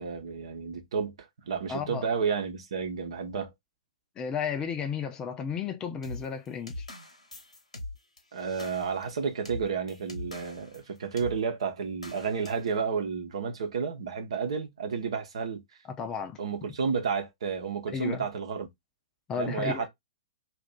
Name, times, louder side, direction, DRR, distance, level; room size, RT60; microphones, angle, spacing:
voice 1, 0.0-3.5 8.3-15.6 16.4-18.7 19.4-19.9, right 6 dB, 60° right, 0.9 m, -31 dB
voice 2, 1.7-2.1 4.2-6.9 16.0-16.4 17.9-18.2 19.3-19.9, left 6 dB, 20° left, 0.6 m, -33 dB
sound 1, 6.0-10.8 11.2-11.4 12.0-12.7, left 2 dB, 85° left, 0.9 m, -42 dB
2.8 x 2.5 x 3.5 m
figure-of-eight pair, 110°, 3 cm